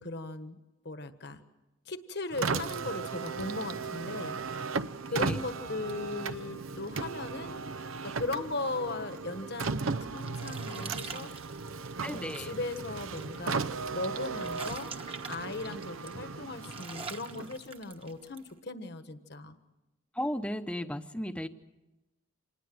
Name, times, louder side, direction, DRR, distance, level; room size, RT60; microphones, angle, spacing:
voice 1, 0.0-1.4 1.9-4.6 5.1-7.6 8.0-11.3 12.0-14.9 15.2-19.6, left 2 dB, 55° left, 9 dB, 1.4 m, -38 dB
Car, 2.3-17.7, right 4 dB, 80° right, 0.7 m, -36 dB
voice 2, 5.1-5.5 12.0-12.6 20.1-21.5, equal, 5° left, 9 dB, 0.9 m, -35 dB
sound 1, 10.0-18.5, right 5 dB, 25° right, 1.3 m, -46 dB
26.5 x 20.0 x 7.8 m, 1.0 s
head